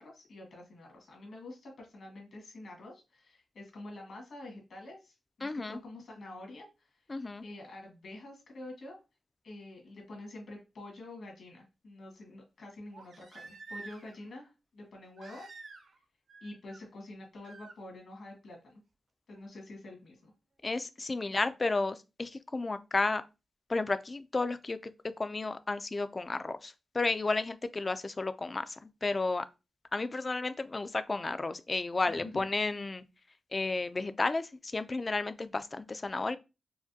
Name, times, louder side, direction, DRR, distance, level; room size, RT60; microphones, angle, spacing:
voice 1, 0.0-7.0 7.4-9.0 9.4-15.5 16.4-18.8 19.3-20.3 21.2-21.3 32.1-32.3, left 2 dB, 70° left, 1.5 m, -47 dB
voice 2, 5.4-5.8 7.1-7.4 20.6-23.2 23.7-24.9 25.2-29.5 29.9-33.0 33.5-36.4, left 3 dB, 30° left, 0.3 m, -32 dB
Crying sobbing, 10.2-10.3 12.9-14.2 15.2-16.0 16.3-16.8 17.4-17.8 19.4-19.5, right 4 dB, 65° right, 0.7 m, -49 dB
4.7 x 2.1 x 2.6 m
wide cardioid pair, 115°, 0 cm